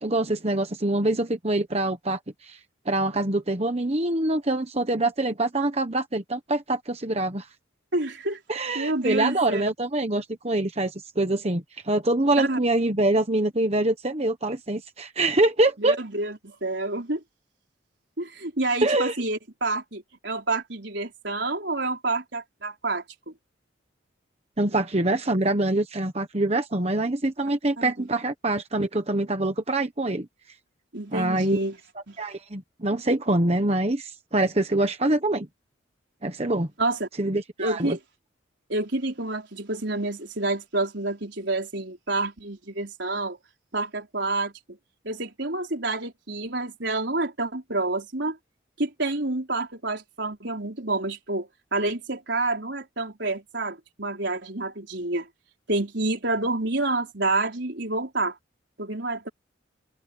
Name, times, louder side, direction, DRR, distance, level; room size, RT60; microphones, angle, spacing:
voice 1, 0.0-2.6 2.8-7.5 8.5-16.0 18.8-19.1 24.6-30.3 31.1-31.6 32.2-35.5 36.2-36.7 37.2-38.0, right 2 dB, 30° right, 1.2 m, -25 dB
voice 2, 7.9-8.4 8.7-9.6 12.4-12.6 15.8-17.2 18.2-23.3 27.8-28.1 30.9-31.8 32.1-32.2 36.8-37.1 37.6-38.0 38.7-43.4 43.7-44.8 45.0-48.4 48.8-55.3 55.7-58.4 58.8-59.3, right 2 dB, 65° right, 4.8 m, -28 dB
head